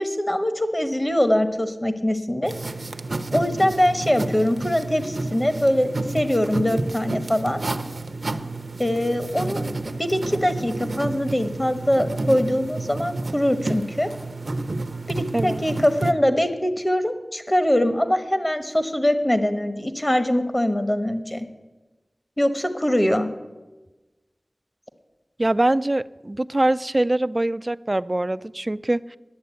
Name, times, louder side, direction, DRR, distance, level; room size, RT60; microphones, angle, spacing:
voice 1, 0.0-2.5 3.3-7.6 8.8-9.6 10.0-14.1 15.1-21.5 22.4-23.3, left 1 dB, 25° left, 9 dB, 1.2 m, -22 dB
sound 1, 2.4-16.1, right 2 dB, 65° right, 0.7 m, -30 dB
voice 2, 25.4-29.2, right 1 dB, 35° right, 16 dB, 0.3 m, -23 dB
10.5 x 8.6 x 8.2 m, 1.2 s
wide cardioid pair, 50°, 0 cm